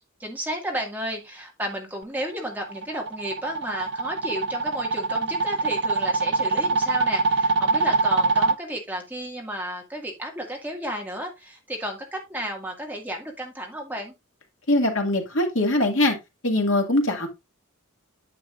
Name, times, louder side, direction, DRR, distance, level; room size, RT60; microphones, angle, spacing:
voice 1, 0.2-14.1, equal, 10° right, 1.9 m, -32 dB
sound 1, 2.4-8.6, right 3 dB, 55° right, 0.6 m, -24 dB
voice 2, 14.7-16.2 16.4-17.3, left 1 dB, 60° left, 2.1 m, -22 dB
9.6 x 6.8 x 2.5 m
head